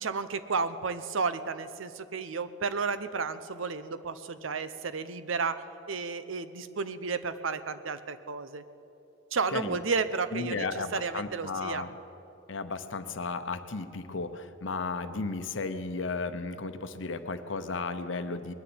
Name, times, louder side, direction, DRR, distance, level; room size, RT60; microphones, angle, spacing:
voice 1, 0.0-5.6 5.9-8.6 9.3-11.8, right 4 dB, 85° right, 12 dB, 0.8 m, -32 dB
voice 2, 10.3-11.9 12.5-18.5, left 3 dB, 75° left, 10 dB, 0.8 m, -34 dB
20.5 x 7.0 x 9.4 m, 2.9 s
head